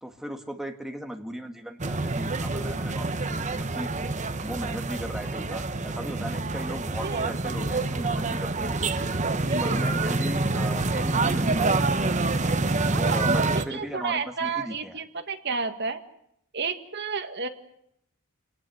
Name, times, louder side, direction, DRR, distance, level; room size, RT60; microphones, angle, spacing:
voice 1, 0.0-3.9 4.4-8.8 9.6-11.7 12.8-15.0, equal, ahead, 5 dB, 1.8 m, -37 dB
sound 1, 1.8-13.6, right 3 dB, 35° right, 1.1 m, -26 dB
voice 2, 7.0-7.7 9.4-9.8 12.9-16.0 16.5-17.5, right 4 dB, 50° right, 7 dB, 1.8 m, -32 dB
28.0 x 19.0 x 7.8 m, 0.76 s
head